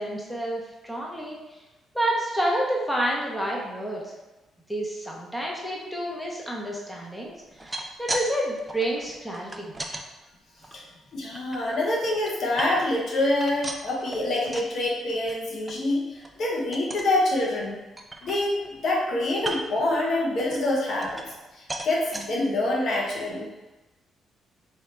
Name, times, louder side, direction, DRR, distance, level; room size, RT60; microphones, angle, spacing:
voice 1, 0.0-1.4 1.9-4.1 4.7-7.3 7.6-9.7, right 1 dB, 5° left, -3 dB, 0.8 m, -29 dB
sound 1, 7.4-8.3 8.6-10.0 10.6-11.6 12.0-13.1 13.4-14.8 15.1-15.4 15.7-15.8 16.2-16.4 16.7-17.1 17.6-17.7 18.0-18.8 19.4-19.8 20.4-21.4 21.7-22.3 22.9-23.0 23.3-23.4, right 2 dB, 15° right, 0.5 m, -36 dB
voice 2, 11.1-17.8 18.2-21.2 21.6-23.5, left 1 dB, 65° left, -2 dB, 1.0 m, -26 dB
4.5 x 2.9 x 3.3 m, 1.1 s
cardioid pair, 90°, 0 cm